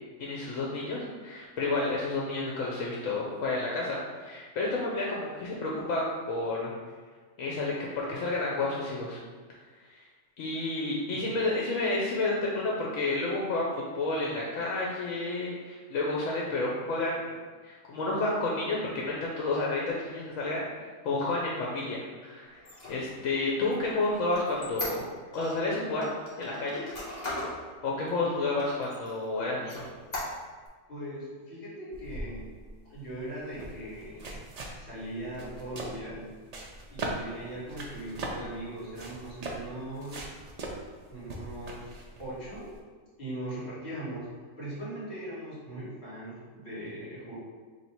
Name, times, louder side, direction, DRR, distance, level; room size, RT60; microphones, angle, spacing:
voice 1, 0.2-6.7 7.4-9.2 9.9-10.0 10.4-13.7 13.9-17.4 17.6-20.6 21.0-22.6 22.9-25.0 25.3-26.0 26.4-26.8 27.8-29.8, left 2 dB, 75° left, -4 dB, 1.0 m, -30 dB
Squeak, 22.5-25.6 26.0-27.6 28.1-28.2 28.6-29.2 29.6-30.7, left 2 dB, 35° left, 1.0 m, -38 dB
voice 2, 28.2-28.5 30.9-32.5 32.8-34.4 34.8-36.4 36.9-40.2 41.1-41.9 42.2-42.6 43.2-44.3 44.6-47.3, right 1 dB, 50° left, -9 dB, 2.0 m, -40 dB
sound 1, 31.9-42.8, right 2 dB, 75° right, 0.3 m, -40 dB
3.2 x 2.7 x 4.2 m, 1.4 s
omnidirectional pair, 1.4 m